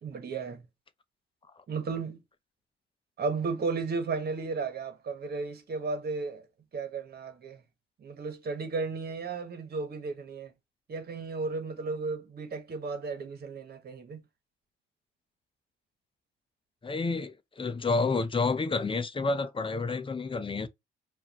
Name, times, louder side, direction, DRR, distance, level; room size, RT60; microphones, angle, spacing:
voice 1, 0.0-0.6 1.7-2.2 3.2-6.4 6.7-7.6 8.0-10.5 10.9-14.2, right 4 dB, 50° right, 1.6 m, -34 dB
voice 2, 16.8-20.7, left 3 dB, 25° left, 0.7 m, -29 dB
4.9 x 2.7 x 3.0 m
cardioid pair, 90°, 20 cm